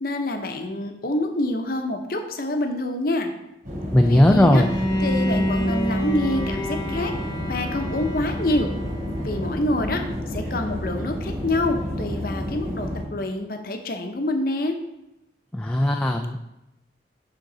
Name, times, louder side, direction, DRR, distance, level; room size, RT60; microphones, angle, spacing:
voice 1, 0.0-3.3 4.0-4.6 5.0-7.1 7.5-8.7 9.2-10.0 10.3-14.8, left 1 dB, 55° left, 5 dB, 0.8 m, -26 dB
sound 1, 3.6-13.0, equal, 50° right, 3.0 m, -30 dB
voice 2, 3.9-4.7 15.5-16.6, left 1 dB, 10° left, 2 dB, 0.3 m, -18 dB
Bowed string instrument, 4.5-9.5, equal, 25° left, 0.8 m, -28 dB
11.0 x 3.8 x 3.9 m, 0.91 s
head